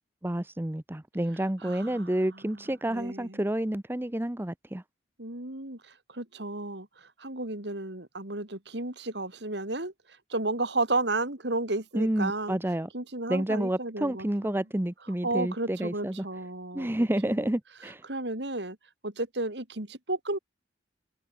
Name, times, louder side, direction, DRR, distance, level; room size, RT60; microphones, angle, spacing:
voice 1, 0.2-4.8 11.9-12.9 13.3-16.2 16.7-18.0, right 1 dB, 10° right, 0.7 m, -29 dB
voice 2, 1.6-3.4 5.2-5.8 6.1-6.9 7.2-9.9 10.3-12.6 12.9-14.6 15.2-17.5 18.0-18.8 19.0-20.4, right 2 dB, 65° right, 3.3 m, -33 dB
open air
head